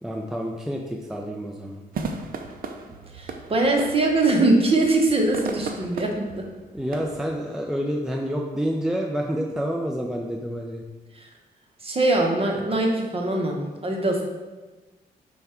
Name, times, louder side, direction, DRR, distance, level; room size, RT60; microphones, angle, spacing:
voice 1, 0.0-1.8 6.7-10.8, equal, 5° right, 0 dB, 0.4 m, -28 dB
sound 1, 1.9-7.3, right 4 dB, 60° right, 0.5 m, -36 dB
voice 2, 3.1-6.5 11.8-14.2, right 2 dB, 35° right, 1 dB, 0.9 m, -22 dB
5.2 x 2.3 x 4.4 m, 1.2 s
cardioid pair, 70°, 17 cm